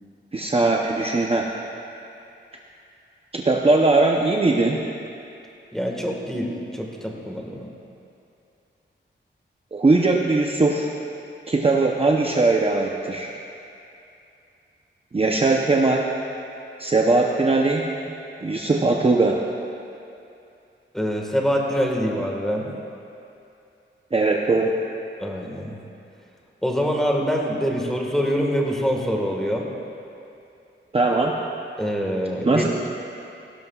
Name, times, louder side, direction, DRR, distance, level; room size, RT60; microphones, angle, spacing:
voice 1, 0.3-1.5 3.3-4.8 9.7-10.9 11.5-13.3 15.1-16.1 16.8-17.8 18.4-19.4 24.1-24.7 30.9-31.4 32.4-32.7, right 3 dB, 30° right, -1 dB, 0.7 m, -20 dB
voice 2, 5.7-7.7 20.9-22.7 25.2-25.8 26.6-29.7 31.8-32.7, equal, ahead, -1 dB, 1.6 m, -25 dB
17.5 x 17.0 x 2.4 m, 2.7 s
wide cardioid pair, 145°, 20 cm